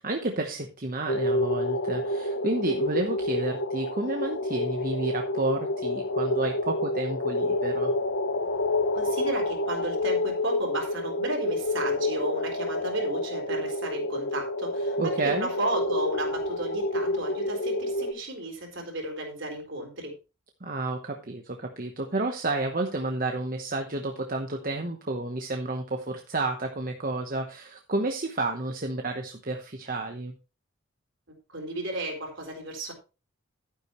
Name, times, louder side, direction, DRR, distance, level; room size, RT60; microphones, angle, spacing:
voice 1, 0.0-7.9 15.0-15.5 20.6-30.3, right 2 dB, 40° right, 4 dB, 1.0 m, -31 dB
sound 1, 1.1-18.1, left 1 dB, 65° left, 0.8 m, -28 dB
voice 2, 8.9-20.2 31.5-32.9, right 1 dB, 60° right, 2 dB, 3.9 m, -33 dB
11.5 x 9.6 x 3.1 m, 0.30 s
head